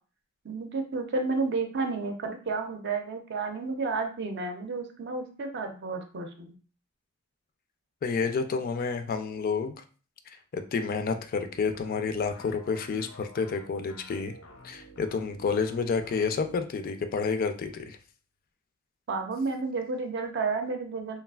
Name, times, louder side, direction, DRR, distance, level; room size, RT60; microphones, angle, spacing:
voice 1, 0.4-6.5 19.1-21.2, right 4 dB, 55° right, 5 dB, 0.5 m, -31 dB
voice 2, 8.0-9.7 10.5-14.3 14.6-18.0, left 5 dB, 45° left, 8 dB, 0.3 m, -29 dB
sound 1, 11.5-16.7, equal, 85° left, 0.6 m, -50 dB
3.1 x 2.4 x 2.3 m, 0.37 s
head